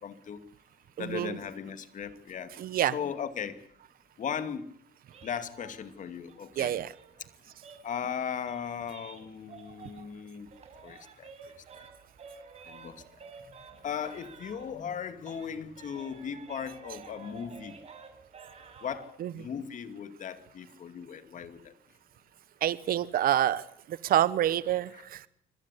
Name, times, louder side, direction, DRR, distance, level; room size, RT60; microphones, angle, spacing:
voice 1, 0.0-0.4 1.0-2.5 2.9-3.6 4.2-4.7 5.2-6.8 7.8-10.5 10.8-11.9 12.7-13.0 13.8-17.8 18.8-21.7 24.9-25.1, left 7 dB, 50° left, 10 dB, 2.4 m, -37 dB
voice 2, 1.0-1.4 2.6-2.9 6.6-6.9 19.2-19.3 22.6-25.3, right 12 dB, 60° right, 17 dB, 1.1 m, -27 dB
sound 1, 5.1-10.2 10.5-15.0 15.2-19.1, right 5 dB, 40° right, 5.5 m, -51 dB
25.5 x 17.0 x 8.4 m, 0.70 s
cardioid pair, 110°, 17 cm